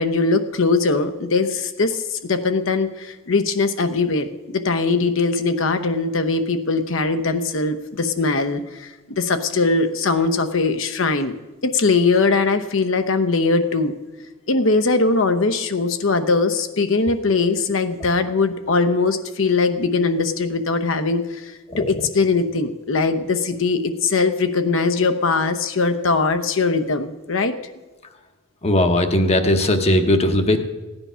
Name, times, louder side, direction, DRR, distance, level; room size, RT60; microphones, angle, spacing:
voice 1, 0.0-8.9 9.2-11.3 11.6-13.9 14.5-21.5 21.8-27.6, left 3 dB, 65° left, 8 dB, 0.9 m, -21 dB
voice 2, 28.6-30.6, left 1 dB, 30° left, 6 dB, 0.9 m, -18 dB
15.5 x 9.8 x 5.6 m, 1.1 s
head